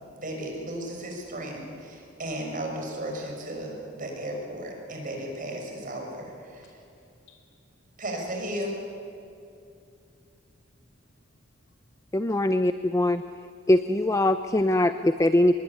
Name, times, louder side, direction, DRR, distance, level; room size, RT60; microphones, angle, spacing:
voice 1, 0.2-6.7 8.0-8.8, right 1 dB, 45° right, 1 dB, 6.0 m, -35 dB
voice 2, 6.6-7.6 7.9-8.0 9.8-9.9 10.5-12.4, left 3 dB, 85° left, 3 dB, 5.8 m, -64 dB
voice 3, 12.1-13.2 13.7-15.5, left 1 dB, 15° left, 11 dB, 0.6 m, -22 dB
26.0 x 21.0 x 10.0 m, 2.6 s
head